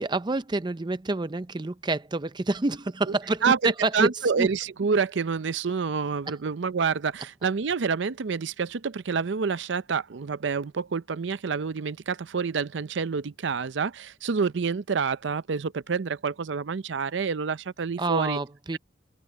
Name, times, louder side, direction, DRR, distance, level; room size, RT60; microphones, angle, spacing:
voice 1, 0.0-4.1 4.4-4.5 18.0-18.8, right 2 dB, 25° right, 0.6 m, -27 dB
voice 2, 3.4-18.4, right 5 dB, 70° right, 0.5 m, -28 dB
head